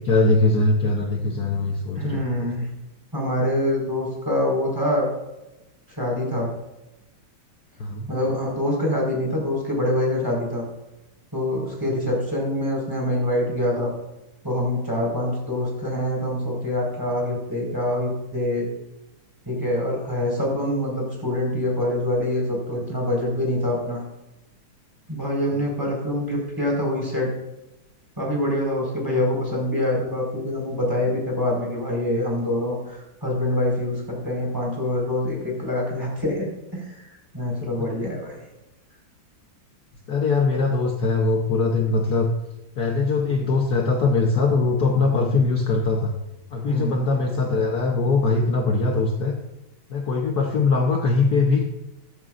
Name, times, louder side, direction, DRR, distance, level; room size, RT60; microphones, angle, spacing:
voice 1, 0.0-2.2 7.8-8.1 25.5-25.6 37.8-37.9 40.1-42.3 42.8-46.2 46.5-49.4 49.9-51.6, left 3 dB, 55° left, 1 dB, 1.4 m, -21 dB
voice 2, 1.9-2.7 3.1-5.1 5.9-6.5 8.1-10.6 11.3-13.9 14.4-18.7 19.4-24.0 25.1-27.3 28.2-36.5 36.7-38.4 46.7-47.0, left 1 dB, 10° right, -3 dB, 4.7 m, -25 dB
15.0 x 13.5 x 2.5 m, 0.97 s
omnidirectional pair, 2.2 m